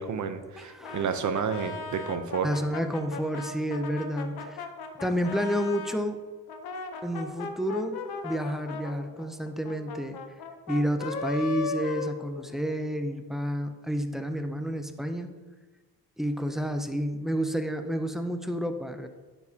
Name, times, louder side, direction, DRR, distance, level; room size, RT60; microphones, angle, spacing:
voice 1, 0.0-2.5, right 6 dB, 50° right, 8 dB, 0.7 m, -30 dB
voice 2, 0.6-1.1 2.4-4.7 5.0-6.2 7.0-10.2 10.7-15.3 16.2-19.1, equal, ahead, 7 dB, 0.5 m, -30 dB
Brass instrument, 0.8-6.0 6.5-12.8, left 4 dB, 85° left, 0.9 m, -37 dB
10.5 x 7.1 x 2.8 m, 1.3 s
cardioid pair, 115°, 37 cm